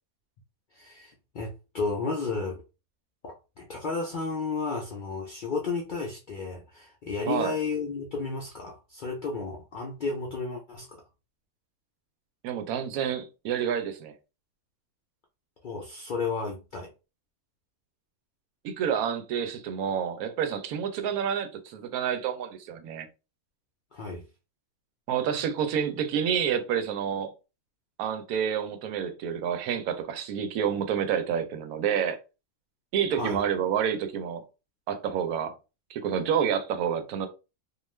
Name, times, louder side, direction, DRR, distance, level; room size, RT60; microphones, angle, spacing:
voice 1, 0.7-2.6 3.2-11.0 15.6-16.9 23.9-24.3 33.1-33.4, left 4 dB, 65° left, 0.4 m, -33 dB
voice 2, 7.3-7.6 12.4-14.1 18.6-23.1 25.1-27.3 28.0-32.2 32.9-34.4 34.9-35.5 35.9-37.3, right 8 dB, 85° right, 1.0 m, -28 dB
2.4 x 2.3 x 3.1 m
omnidirectional pair, 1.5 m